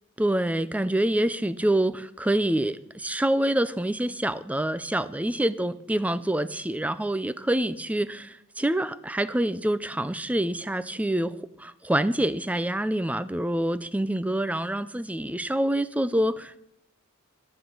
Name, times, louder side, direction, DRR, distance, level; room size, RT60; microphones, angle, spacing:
voice 1, 0.2-16.6, right 1 dB, 5° right, 0.5 m, -26 dB
11.5 x 10.5 x 5.4 m
head